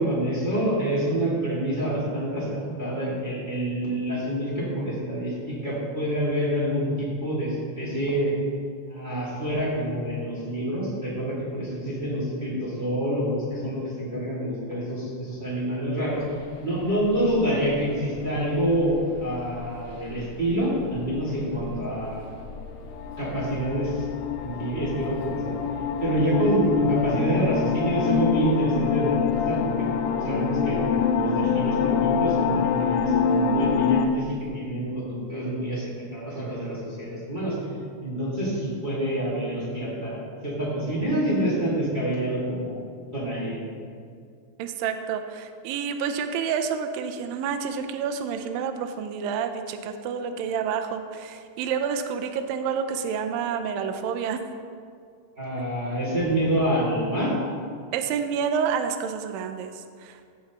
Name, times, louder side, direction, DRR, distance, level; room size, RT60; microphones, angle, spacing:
voice 1, 0.0-8.3 8.9-16.2 16.6-22.3 23.2-24.0 24.3-25.6 26.0-29.9 30.2-37.5 38.0-42.7 43.1-43.6 55.4-57.3, right 1 dB, 25° right, -8 dB, 1.0 m, -27 dB
sound 1, 16.1-34.5, left 2 dB, 65° left, 2.5 m, -43 dB
sound 2, 22.7-34.1, left 7 dB, 85° left, 2.5 m, -25 dB
voice 2, 44.6-54.4 57.9-60.2, right 7 dB, 90° right, 7 dB, 2.0 m, -29 dB
15.0 x 6.9 x 3.0 m, 2.2 s
omnidirectional pair, 4.8 m